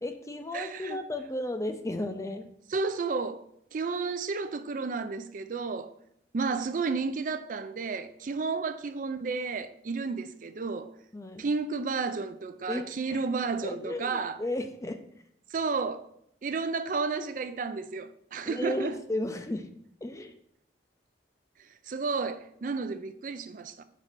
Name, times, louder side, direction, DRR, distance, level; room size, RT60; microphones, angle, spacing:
voice 1, 0.0-2.5 11.1-11.5 12.7-13.2 13.6-15.0 18.4-19.7 20.0-20.3, left 1 dB, 20° left, 0.5 m, -34 dB
voice 2, 0.5-1.0 2.7-5.9 6.3-10.9 11.4-14.4 15.5-16.1 16.4-19.0 21.9-23.8, right 4 dB, 50° right, 0.4 m, -32 dB
5.3 x 4.1 x 6.0 m
head